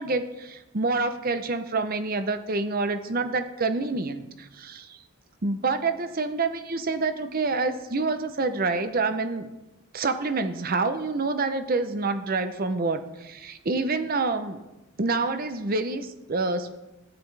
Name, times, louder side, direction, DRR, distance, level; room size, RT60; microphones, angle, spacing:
voice 1, 0.0-5.0 5.4-9.5 9.9-14.6 15.0-16.7, right 3 dB, 40° right, 9 dB, 0.6 m, -27 dB
14.0 x 9.3 x 3.4 m, 1.0 s
head